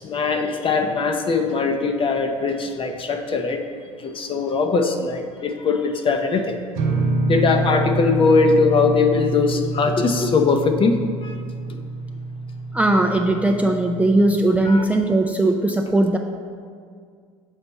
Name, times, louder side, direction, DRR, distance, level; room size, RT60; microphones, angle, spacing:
voice 1, 0.0-3.6 4.0-6.6 7.3-11.4 11.7-11.8 14.7-14.8, left 4 dB, 30° left, 5 dB, 0.7 m, -21 dB
sound 1, 6.8-14.3, right 2 dB, 60° right, 0.8 m, -26 dB
voice 2, 12.7-16.2, right 2 dB, 10° right, 2 dB, 0.4 m, -19 dB
7.1 x 4.3 x 4.1 m, 2.1 s
hypercardioid pair, 70°, 17 cm